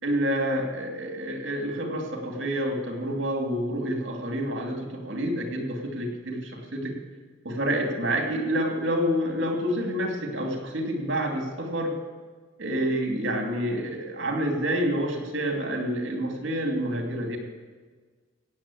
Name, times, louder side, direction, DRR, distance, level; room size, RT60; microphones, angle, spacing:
voice 1, 0.0-7.0 7.4-11.9 12.6-17.4, equal, 60° right, 3 dB, 2.5 m, -28 dB
15.5 x 8.4 x 8.5 m, 1.5 s
head